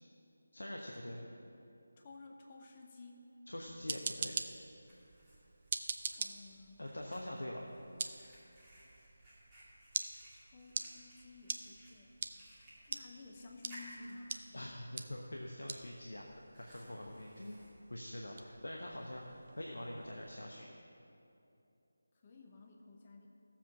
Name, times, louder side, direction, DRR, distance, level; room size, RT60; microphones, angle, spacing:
voice 1, 0.5-1.2 3.5-4.3 6.8-7.6 14.5-16.3 16.6-17.6 17.9-20.7, left 1 dB, 65° left, -1 dB, 1.1 m, -44 dB
voice 2, 2.0-3.4 6.1-6.9 10.3-12.2 12.9-14.5 22.2-23.3, left 3 dB, 25° left, 1 dB, 0.8 m, -54 dB
sound 1, 3.6-20.4, right 4 dB, 30° right, 0.5 m, -46 dB
Fire, 4.7-19.1, equal, 5° right, 2.4 m, -61 dB
15.5 x 7.4 x 5.9 m, 2.8 s
figure-of-eight pair, 160°, 0 cm